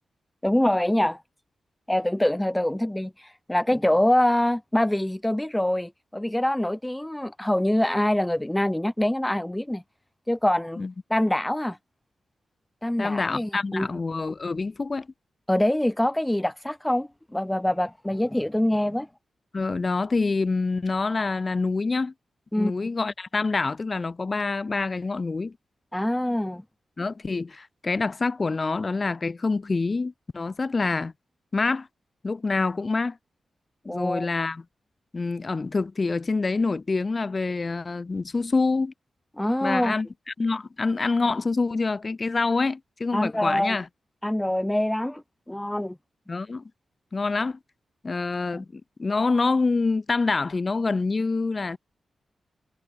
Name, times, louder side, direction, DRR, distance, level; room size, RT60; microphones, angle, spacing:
voice 1, 0.4-1.2 1.9-9.8 10.3-10.8 11.1-11.8 12.8-13.9 15.5-19.1 22.5-22.7 25.9-26.6 33.8-34.3 39.4-39.9 43.1-43.8 44.2-46.0 48.5-48.6, left 1 dB, 5° left, 1.1 m, -25 dB
voice 2, 13.0-15.1 19.5-22.1 22.6-25.5 27.0-31.1 31.5-31.9 32.2-33.2 33.9-34.6 35.1-38.9 39.6-40.1 40.4-43.9 46.3-46.6 47.1-47.6 48.0-51.8, left 3 dB, 30° left, 2.0 m, -26 dB
wide cardioid pair, 130°, 0 cm